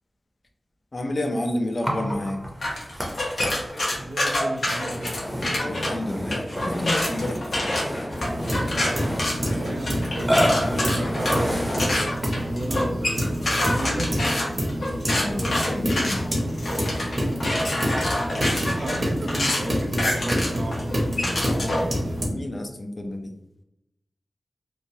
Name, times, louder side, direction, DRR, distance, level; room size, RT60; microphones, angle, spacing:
voice 1, 0.9-2.4 5.6-7.5 15.1-16.3 21.5-23.3, left 1 dB, 45° left, 4 dB, 0.4 m, -30 dB
Burping eructation, 1.8-12.5, equal, 5° right, 0.7 m, -30 dB
sound 1, 2.6-5.9 6.3-21.9, left 1 dB, 75° left, 0.8 m, -27 dB
voice 2, 4.0-5.2 9.5-11.8 12.3-14.2 18.8-20.9, right 1 dB, 75° right, 2 dB, 0.5 m, -33 dB
sound 2, 8.1-22.3, equal, 40° right, 0.8 m, -27 dB
3.1 x 2.2 x 2.6 m, 0.81 s
wide cardioid pair, 95°, 0 cm